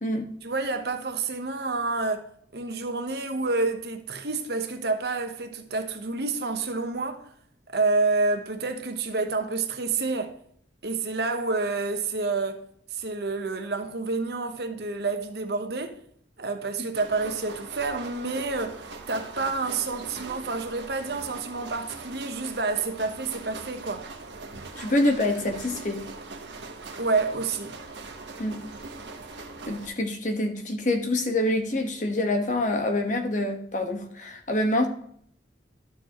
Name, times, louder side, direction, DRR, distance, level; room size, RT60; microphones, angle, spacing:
voice 1, 0.4-2.3 2.5-7.3 7.7-10.4 10.8-12.6 12.9-16.0 16.4-24.1 27.0-27.7, right 3 dB, 60° right, 1.1 m, -28 dB
sound 1, 16.9-29.9, right 3 dB, 85° right, 1.2 m, -41 dB
voice 2, 24.8-26.0 28.4-28.6 29.7-34.9, left 1 dB, 45° left, 1.4 m, -26 dB
12.0 x 6.9 x 3.0 m
head